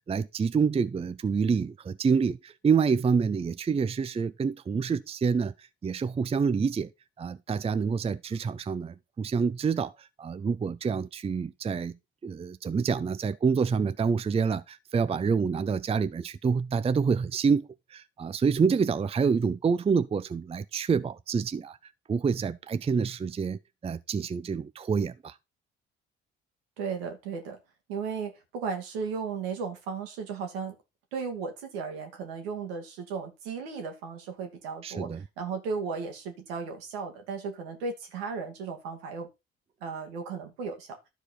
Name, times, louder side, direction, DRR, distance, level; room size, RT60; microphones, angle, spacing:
voice 1, 0.0-6.9 7.2-12.0 12.2-21.8 22.1-25.4 34.8-35.2, right 5 dB, 20° right, 0.5 m, -27 dB
voice 2, 26.8-27.6 27.9-30.8 31.1-39.3 39.8-41.0, right 5 dB, 75° right, 2.0 m, -35 dB
12.5 x 4.8 x 4.3 m
figure-of-eight pair, 50°, 30 cm